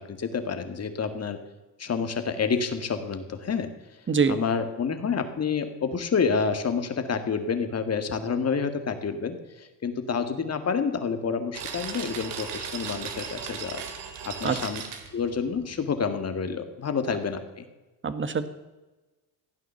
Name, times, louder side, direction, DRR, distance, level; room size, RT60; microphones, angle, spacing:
voice 1, 0.0-1.4 1.8-3.7 4.3-13.8 14.2-14.8 15.1-17.7, left 5 dB, 40° left, 8 dB, 1.9 m, -28 dB
voice 2, 4.1-4.4 14.4-14.6 18.0-18.5, right 5 dB, 30° right, 12 dB, 1.3 m, -24 dB
sound 1, 11.5-15.9, right 7 dB, 80° right, 2.2 m, -37 dB
15.5 x 9.3 x 6.9 m, 1.1 s
cardioid pair, 95°, 41 cm